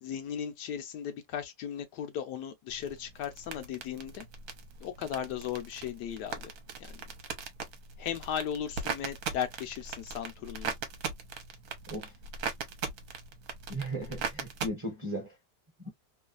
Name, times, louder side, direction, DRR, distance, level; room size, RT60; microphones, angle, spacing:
voice 1, 0.0-4.3 4.8-6.5 6.8-7.0 8.0-10.8, left 9 dB, 75° left, 1.2 m, -36 dB
sound 1, 2.7-14.7, right 5 dB, 65° right, 1.2 m, -40 dB
voice 2, 13.7-15.4 15.8-15.9, right 1 dB, 25° right, 0.7 m, -36 dB
3.1 x 2.3 x 2.4 m
omnidirectional pair, 1.9 m